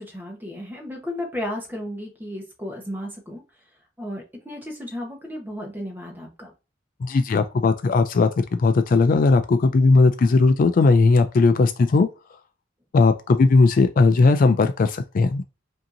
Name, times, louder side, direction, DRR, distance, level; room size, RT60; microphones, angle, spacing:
voice 1, 0.0-3.4 4.0-6.5, left 1 dB, 10° right, 1.0 m, -34 dB
voice 2, 7.0-12.1 12.9-15.4, left 3 dB, 45° left, 0.3 m, -18 dB
5.2 x 2.8 x 2.6 m
head